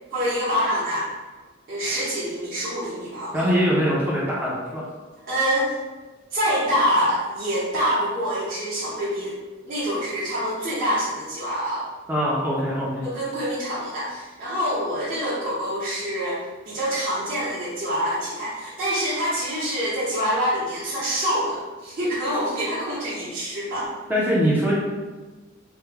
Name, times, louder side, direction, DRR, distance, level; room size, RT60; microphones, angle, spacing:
voice 1, 0.1-1.1 1.7-3.4 5.2-5.7 6.3-9.4 9.6-11.9 13.0-23.9, equal, 45° right, -9 dB, 0.8 m, -26 dB
voice 2, 3.3-4.9 12.1-13.1 24.1-24.8, equal, 10° right, -7 dB, 0.5 m, -22 dB
3.4 x 2.1 x 3.2 m, 1.3 s
head